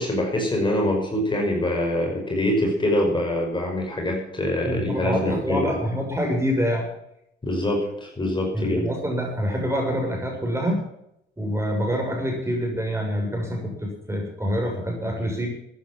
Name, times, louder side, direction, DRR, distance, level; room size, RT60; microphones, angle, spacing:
voice 1, 0.0-5.8 7.4-8.8, left 1 dB, 25° left, 0 dB, 5.5 m, -24 dB
voice 2, 4.6-6.9 8.5-10.8 11.4-15.5, equal, 15° right, 1 dB, 6.8 m, -26 dB
14.0 x 10.0 x 7.4 m, 0.79 s
cardioid pair, 90°, 20 cm